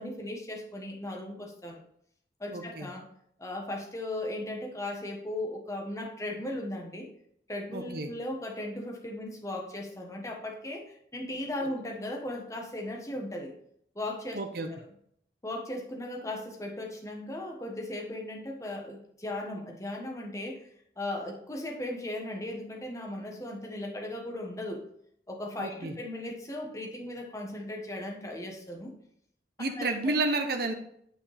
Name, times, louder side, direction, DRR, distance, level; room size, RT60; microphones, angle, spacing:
voice 1, 0.0-1.8 2.4-3.1 3.4-7.1 7.5-13.5 13.9-14.4 15.4-20.6 21.0-24.8 25.3-28.9 29.8-30.2, left 1 dB, 15° left, 0 dB, 1.2 m, -37 dB
voice 2, 2.5-2.9 7.7-8.1 14.3-14.7 25.6-25.9 29.6-30.7, right 2 dB, 55° right, 4 dB, 0.8 m, -31 dB
8.9 x 5.1 x 3.4 m, 0.69 s
head